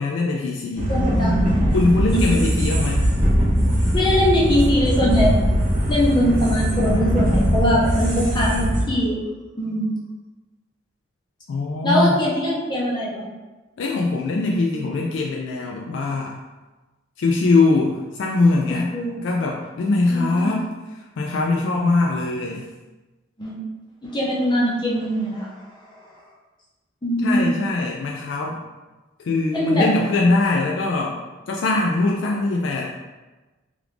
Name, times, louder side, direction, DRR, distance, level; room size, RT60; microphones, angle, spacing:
voice 1, 0.0-0.9 1.7-3.1 11.5-12.2 13.8-16.4 17.2-18.9 19.2-20.7 21.2-22.6 27.2-28.6 29.2-31.2 31.5-33.0, left 3 dB, 70° left, -1 dB, 0.3 m, -21 dB
sound 1, 0.8-8.8, equal, 40° right, 0.9 m, -20 dB
voice 2, 0.9-1.7 2.1-2.2 3.9-5.4 5.9-9.2 9.6-9.9 11.8-13.3 18.9-19.2 20.1-20.5 23.4-23.6 24.0-26.2 27.0-27.6 29.5-29.9, equal, 25° left, -5 dB, 0.7 m, -22 dB
3.1 x 2.4 x 3.3 m, 1.2 s
head